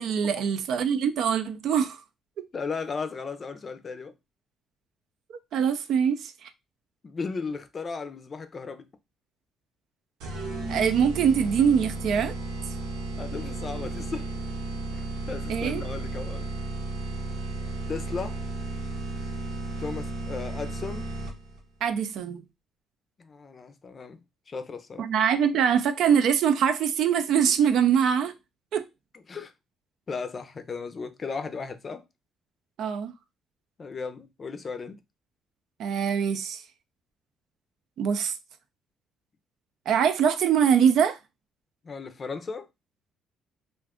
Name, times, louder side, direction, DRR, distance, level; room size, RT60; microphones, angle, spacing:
voice 1, 0.0-2.0 5.5-6.5 10.7-12.3 15.5-15.8 21.8-22.4 25.0-28.3 28.7-28.8 32.8-33.1 35.8-36.6 38.0-38.4 39.9-41.2, right 7 dB, 70° right, 0.5 m, -23 dB
voice 2, 2.5-4.1 7.0-8.9 13.2-14.3 15.3-16.5 17.9-18.4 19.8-21.1 23.2-24.2 24.5-25.0 29.3-29.5 30.1-32.0 33.8-35.0 41.8-42.7, left 4 dB, 40° left, 0.5 m, -35 dB
sound 1, 10.2-21.6, right 2 dB, 90° right, 0.9 m, -34 dB
2.5 x 2.4 x 3.5 m
cardioid pair, 85°, 0 cm